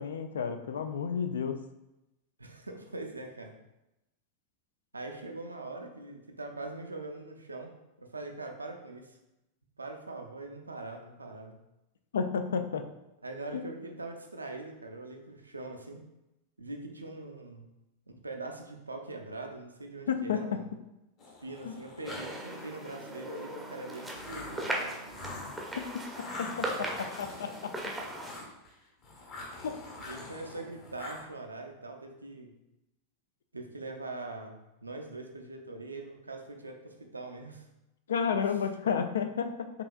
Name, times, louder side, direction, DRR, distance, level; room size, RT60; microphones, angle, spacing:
voice 1, 0.0-1.6 12.1-12.9 13.5-13.6 20.1-20.6 21.6-21.7 26.2-27.7 29.6-29.8 38.1-39.7, left 6 dB, 65° left, 7 dB, 0.3 m, -31 dB
voice 2, 2.4-3.5 4.9-9.2 9.8-11.5 13.2-16.0 16.6-17.7 18.2-20.7 21.4-25.0 30.1-32.5 33.5-37.7 38.4-38.5, right 2 dB, 80° right, 3 dB, 0.5 m, -42 dB
sound 1, 21.2-22.6 24.1-28.7 29.0-31.2, left 2 dB, 35° left, 0.9 m, -45 dB
sound 2, 22.1-28.4, right 1 dB, 5° right, 0.6 m, -38 dB
4.7 x 2.8 x 2.4 m, 0.92 s
figure-of-eight pair, 90°, 0 cm